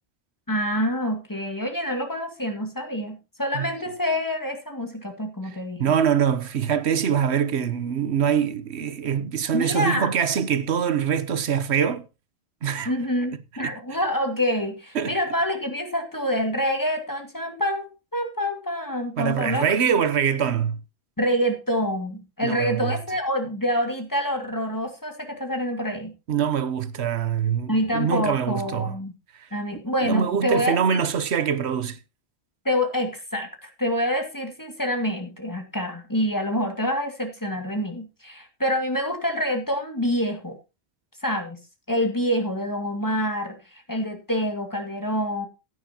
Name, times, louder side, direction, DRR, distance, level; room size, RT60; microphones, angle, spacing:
voice 1, 0.5-5.8 9.5-10.1 12.8-19.7 21.2-26.1 27.7-29.1 29.5-31.0 32.6-40.6 41.2-41.6 41.9-45.5, equal, 20° left, 2.3 m, -26 dB
voice 2, 5.8-12.0 12.6-12.9 13.6-13.7 14.9-15.2 19.2-20.8 22.4-23.0 26.3-29.0 29.3-29.5 30.0-32.0, right 8 dB, 90° right, 1.2 m, -24 dB
16.0 x 9.5 x 2.9 m
omnidirectional pair, 1.1 m